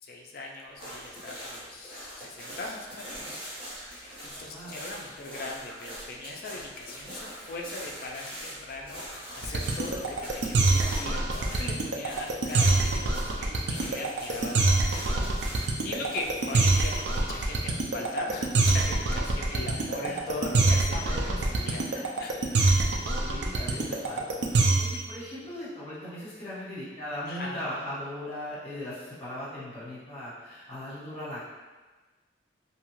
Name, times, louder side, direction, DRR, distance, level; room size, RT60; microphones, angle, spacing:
voice 1, 0.0-3.5 3.8-21.9 22.2-22.4 27.3-27.6, left 2 dB, 50° left, 0 dB, 0.4 m, -40 dB
sound 1, 0.8-17.2, equal, 30° right, 1.0 m, -43 dB
voice 2, 4.0-4.8 19.7-20.3 20.9-22.0 22.5-31.4, left 1 dB, 30° left, -10 dB, 1.2 m, -39 dB
sound 2, 9.4-25.1, right 3 dB, 65° right, 0.4 m, -25 dB
2.8 x 2.3 x 2.9 m, 1.3 s
head